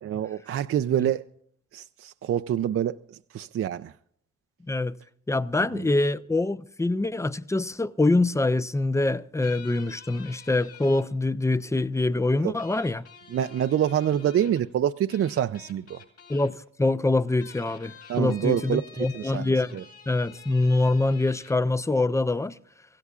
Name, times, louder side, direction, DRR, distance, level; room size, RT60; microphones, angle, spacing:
voice 1, 0.0-1.2 1.7-3.0 3.3-3.9 5.7-5.8 12.4-12.5 13.3-16.0 18.1-19.8, right 10 dB, 50° right, 0.5 m, -26 dB
voice 2, 5.3-13.0 16.3-19.8 20.1-22.6, left 2 dB, 10° left, 0.6 m, -25 dB
sound 1, 9.4-11.0 12.6-14.7 15.1-16.5 17.3-21.5, left 6 dB, 55° left, 5.9 m, -49 dB
24.5 x 16.0 x 2.4 m
cardioid pair, 90°, 30 cm